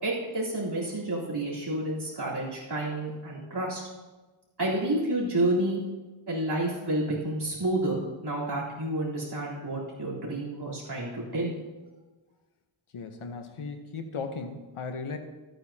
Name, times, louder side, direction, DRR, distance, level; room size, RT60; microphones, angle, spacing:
voice 1, 0.0-3.8 4.6-5.8 6.3-11.6, right 1 dB, 50° right, -6 dB, 3.6 m, -30 dB
voice 2, 12.9-15.2, left 4 dB, 80° left, 6 dB, 1.1 m, -36 dB
14.0 x 9.1 x 2.9 m, 1.2 s
wide cardioid pair, 85°, 49 cm